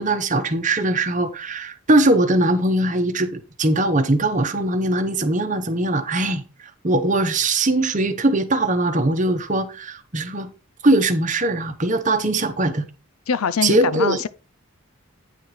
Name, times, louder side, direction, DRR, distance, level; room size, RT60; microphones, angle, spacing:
voice 1, 0.0-6.4 6.8-10.5 10.8-12.8 13.6-14.2, right 2 dB, 35° right, 1.0 m, -20 dB
voice 2, 13.3-14.3, left 6 dB, 75° left, 0.6 m, -23 dB
9.2 x 4.5 x 4.9 m
head